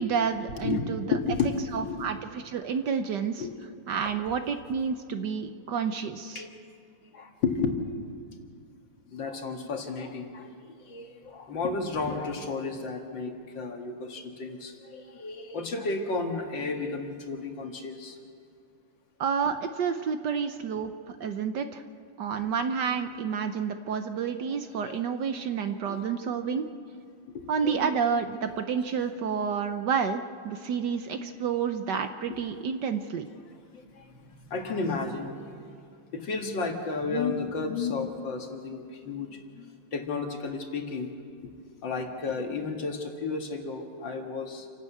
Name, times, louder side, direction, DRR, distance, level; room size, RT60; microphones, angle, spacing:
voice 1, 0.0-1.2 1.7-3.4 3.9-6.4 19.2-21.8 22.2-26.6 27.5-33.3, right 6 dB, 65° right, 8 dB, 1.2 m, -29 dB
voice 2, 1.1-2.1 3.4-3.5 6.4-6.6 7.1-7.8 9.1-10.5 10.8-18.2 24.8-25.0 25.9-26.0 27.3-27.7 32.3-32.4 33.7-35.5 36.1-41.1 41.8-44.7, left 4 dB, 60° left, 3 dB, 2.5 m, -32 dB
29.0 x 12.0 x 8.3 m, 2.4 s
omnidirectional pair, 2.4 m